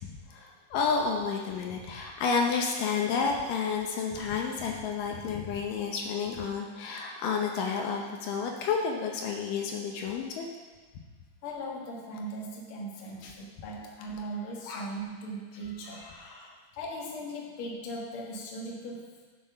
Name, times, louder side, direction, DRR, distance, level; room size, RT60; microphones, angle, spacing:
voice 1, 0.0-10.5 13.2-13.3 14.7-14.8 15.8-16.6, left 5 dB, 75° left, 1 dB, 2.4 m, -31 dB
voice 2, 11.4-16.1 16.8-19.2, right 1 dB, 50° left, -2 dB, 1.9 m, -39 dB
8.0 x 7.5 x 5.6 m, 1.4 s
omnidirectional pair, 4.0 m